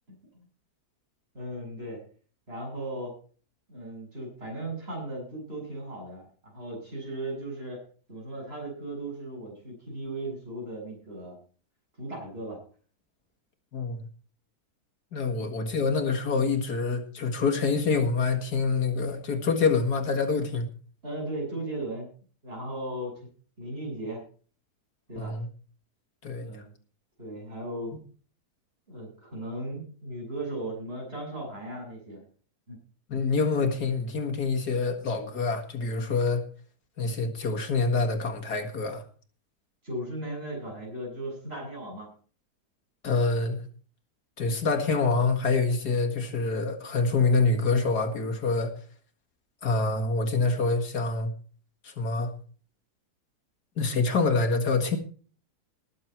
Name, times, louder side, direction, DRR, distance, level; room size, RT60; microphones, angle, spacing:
voice 1, 1.3-2.0 2.5-3.2 3.7-7.8 8.1-11.4 12.0-12.6 15.3-15.6 21.0-22.1 22.4-23.1 23.6-24.2 25.1-25.3 26.4-26.7 27.2-28.0 28.9-32.2 32.7-32.8 39.8-42.1, right 1 dB, 35° right, -1 dB, 7.8 m, -37 dB
voice 2, 13.7-14.1 15.1-20.7 25.2-25.5 26.2-26.6 33.1-36.4 37.0-39.0 43.0-43.6 44.4-48.7 49.6-51.3 51.8-52.3 53.8-55.0, left 4 dB, 75° left, 4 dB, 2.3 m, -26 dB
20.0 x 7.6 x 4.5 m, 0.41 s
omnidirectional pair, 1.7 m